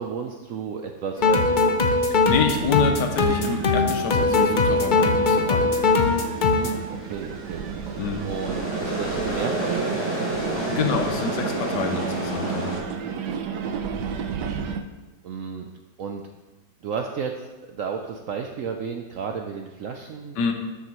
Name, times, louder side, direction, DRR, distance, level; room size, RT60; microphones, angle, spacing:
voice 1, 0.0-1.9 6.6-7.7 8.2-10.6 15.2-15.7 16.0-16.2 16.8-20.5, right 6 dB, 65° right, 3 dB, 0.8 m, -33 dB
sound 1, 1.2-6.8, left 3 dB, 60° left, 0.5 m, -21 dB
voice 2, 2.3-5.6 8.0-8.2 10.7-12.8 13.1-13.2 20.4-20.5, left 5 dB, 90° left, 5 dB, 1.5 m, -27 dB
sound 2, 2.3-14.8, right 6 dB, 85° right, 1.3 m, -33 dB
sound 3, 5.8-12.8, right 2 dB, 10° right, 3.2 m, -30 dB
12.5 x 6.6 x 3.0 m, 1.1 s
omnidirectional pair, 1.8 m